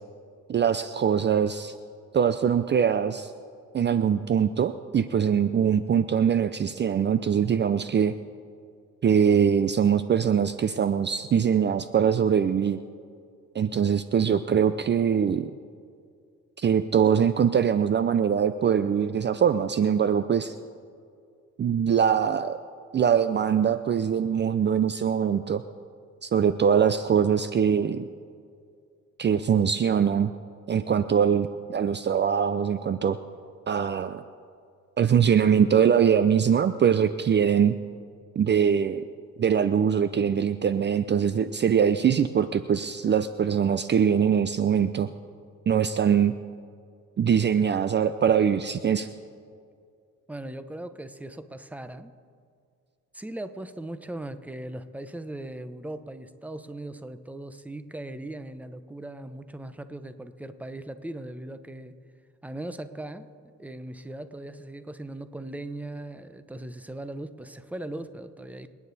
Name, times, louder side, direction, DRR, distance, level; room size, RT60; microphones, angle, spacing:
voice 1, 0.5-1.7 2.1-3.3 3.7-8.1 9.0-12.8 13.5-15.5 16.6-20.5 21.6-22.6 22.9-25.6 26.2-28.1 29.2-30.3 30.7-33.2 33.7-34.2 35.0-37.8 38.4-39.1 39.4-45.1 45.7-46.3 47.2-49.1, right 8 dB, 35° right, 12 dB, 0.5 m, -22 dB
voice 2, 50.3-52.1 53.1-61.9 62.4-63.3 63.6-68.7, right 1 dB, 5° right, 11 dB, 0.8 m, -39 dB
27.0 x 9.6 x 4.1 m, 2.3 s
cardioid pair, 90°, 30 cm